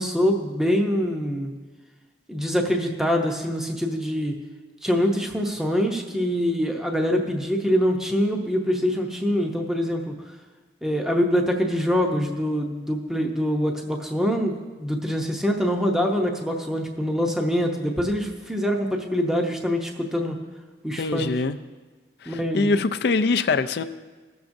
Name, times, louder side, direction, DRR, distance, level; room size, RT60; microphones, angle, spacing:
voice 1, 0.0-1.5 2.3-4.4 4.8-10.1 10.8-20.3 20.8-21.3 22.3-22.8, equal, 5° right, 1 dB, 0.7 m, -24 dB
voice 2, 21.0-21.6 22.2-23.8, left 3 dB, 60° left, 10 dB, 0.4 m, -23 dB
19.0 x 7.1 x 2.6 m, 1.3 s
head